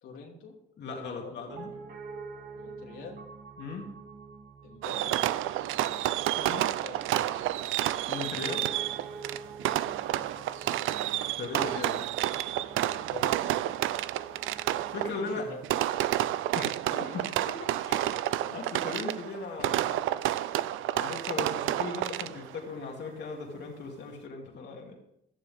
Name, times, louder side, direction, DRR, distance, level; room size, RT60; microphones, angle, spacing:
voice 1, 0.0-0.5 1.1-1.4 2.5-3.2 4.6-5.2 6.6-7.0 10.0-10.5 12.8-13.7 14.9-15.9, left 4 dB, 85° left, -1 dB, 2.9 m, -46 dB
voice 2, 0.8-1.7 3.6-3.9 6.4-6.7 8.1-8.7 11.4-12.1 14.9-15.4 16.5-20.1 20.8-24.9, left 3 dB, 65° left, 0 dB, 2.6 m, -38 dB
Piano, 1.5-15.2, right 5 dB, 45° right, 2.0 m, -47 dB
Fireworks, 4.8-22.6, right 13 dB, 85° right, 0.5 m, -30 dB
16.5 x 11.5 x 3.6 m, 0.78 s
cardioid pair, 90°, 20 cm